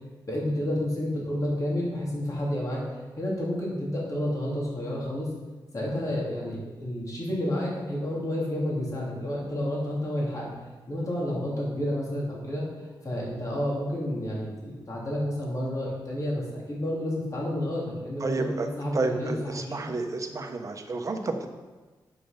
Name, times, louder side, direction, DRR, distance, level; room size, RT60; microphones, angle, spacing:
voice 1, 0.3-2.8 3.2-5.3 5.7-10.5 10.9-12.6 13.0-18.5 18.8-19.9, left 1 dB, 45° left, -4 dB, 3.2 m, -30 dB
voice 2, 18.2-18.7 18.9-21.5, right 3 dB, 40° right, 4 dB, 1.1 m, -30 dB
9.2 x 6.1 x 5.3 m, 1.3 s
cardioid pair, 80°, 8 cm